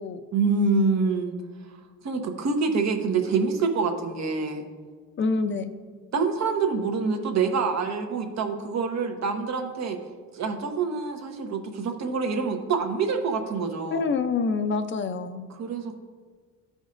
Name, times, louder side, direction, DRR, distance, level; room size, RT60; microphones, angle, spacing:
voice 1, 0.3-1.3 1.7-1.8 2.0-4.6 6.1-10.0 10.3-14.1 15.6-16.0, right 4 dB, 55° right, 5 dB, 1.1 m, -26 dB
voice 2, 5.2-5.7 13.9-15.5, left 4 dB, 35° left, 9 dB, 0.6 m, -26 dB
13.0 x 5.0 x 2.6 m, 1.6 s
cardioid pair, 90°, 33 cm